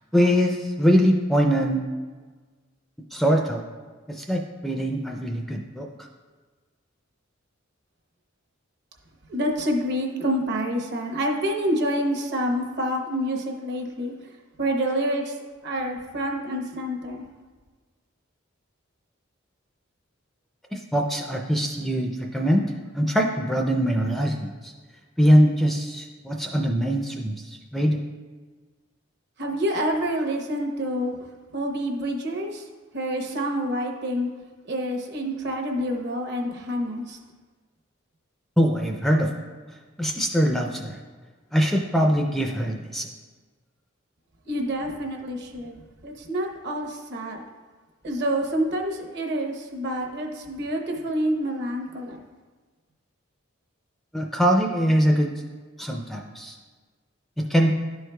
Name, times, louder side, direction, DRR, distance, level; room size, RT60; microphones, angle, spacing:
voice 1, 0.1-1.8 3.1-3.6 4.1-5.9 20.7-22.6 22.9-24.7 25.2-28.0 38.6-39.3 40.0-41.0 41.5-43.1 54.1-55.3 55.8-56.6 57.4-57.7, equal, ahead, 1 dB, 0.3 m, -22 dB
voice 2, 9.3-14.1 14.6-15.3 15.6-17.2 29.4-31.2 31.5-32.6 32.9-34.3 34.6-37.2 44.4-47.4 48.0-52.2, equal, 55° right, 2 dB, 0.9 m, -27 dB
11.5 x 4.6 x 2.2 m, 1.4 s
head